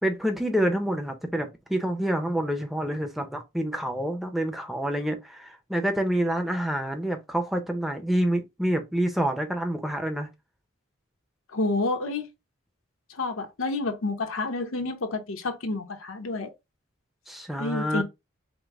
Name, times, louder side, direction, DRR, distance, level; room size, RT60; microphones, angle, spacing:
voice 1, 0.0-10.3 17.3-18.0, right 1 dB, ahead, 0.6 m, -27 dB
voice 2, 11.5-12.3 13.1-16.5 17.6-18.0, left 2 dB, 85° left, 0.9 m, -29 dB
5.0 x 2.0 x 3.5 m
head